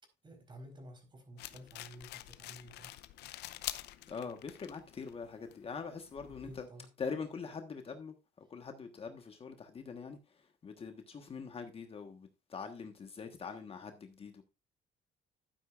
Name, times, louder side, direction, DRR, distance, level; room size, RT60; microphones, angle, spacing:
voice 1, 0.2-3.0 6.4-6.9, equal, 25° right, 4.2 m, -52 dB
sound 1, 1.4-6.7, left 15 dB, 80° left, 0.7 m, -47 dB
voice 2, 4.1-6.7 7.0-14.4, left 5 dB, 35° left, 1.3 m, -43 dB
12.0 x 9.4 x 2.5 m
cardioid pair, 110°, 17 cm